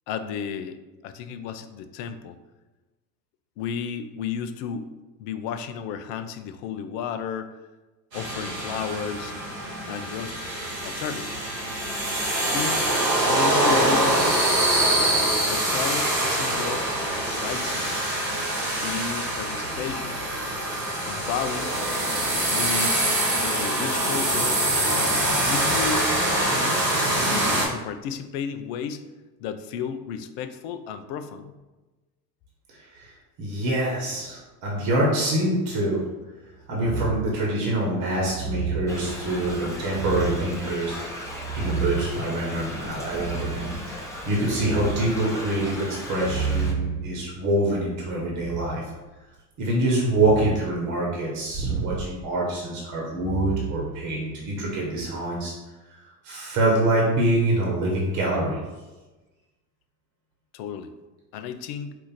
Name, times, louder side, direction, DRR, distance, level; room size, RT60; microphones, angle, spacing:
voice 1, 0.1-2.4 3.6-4.9 5.2-7.5 8.1-9.3 9.9-10.4 10.8-11.3 12.5-12.8 13.2-14.5 15.5-16.9 17.2-18.0 18.8-20.3 21.1-21.7 22.5-23.1 23.4-24.6 25.4-26.9 27.2-29.0 29.4-31.5 60.5-60.9 61.3-61.9, left 7 dB, 40° left, 9 dB, 0.4 m, -33 dB
sound 1, 8.1-27.6, right 1 dB, 90° right, 1.2 m, -24 dB
voice 2, 32.7-36.0 36.7-41.3 41.5-48.8 49.6-55.5 56.2-58.6, right 1 dB, 45° right, -3 dB, 1.3 m, -25 dB
sound 2, 36.8-37.4 38.2-38.9 39.9-40.6 41.2-42.2 43.1-43.7 44.2-45.1 46.1-48.8 50.1-50.6 51.5-52.0 53.1-54.4 54.8-55.1, right 6 dB, 20° right, 0.4 m, -31 dB
Thunder / Rain, 38.9-46.7, left 1 dB, 5° left, 0.9 m, -37 dB
4.6 x 2.4 x 4.1 m, 1.1 s
figure-of-eight pair, 75°, 48 cm